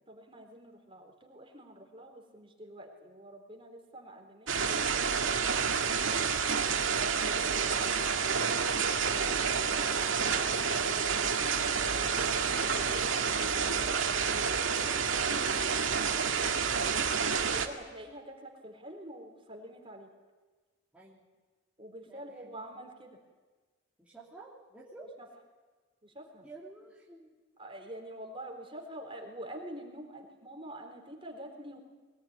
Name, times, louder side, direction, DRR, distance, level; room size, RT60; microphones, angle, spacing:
voice 1, 0.1-5.4 9.1-12.4 12.7-15.8 17.4-20.1 21.8-23.2 26.0-26.5 27.6-31.8, right 1 dB, 30° right, 3 dB, 4.0 m, -47 dB
sound 1, 4.5-17.7, right 6 dB, 75° right, 2.1 m, -29 dB
voice 2, 20.9-21.3 22.1-22.9 24.0-25.1 26.4-27.3, right 3 dB, 5° right, -6 dB, 3.0 m, -53 dB
22.5 x 19.5 x 9.7 m, 1.3 s
head